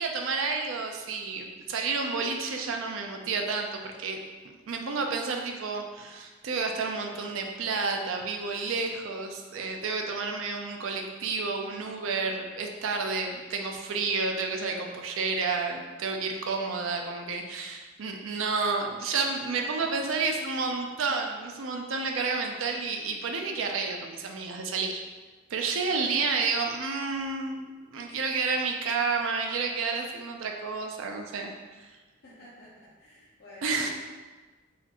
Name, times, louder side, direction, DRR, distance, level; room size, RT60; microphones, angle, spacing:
voice 1, 0.0-4.2 4.4-25.0 25.5-31.5 31.8-32.0 33.6-33.9, right 4 dB, 70° right, 2 dB, 0.5 m, -30 dB
voice 2, 19.5-20.0 22.1-22.2 28.4-28.5 32.2-33.9, left 1 dB, 60° left, -10 dB, 0.8 m, -50 dB
4.1 x 2.4 x 2.9 m, 1.3 s
head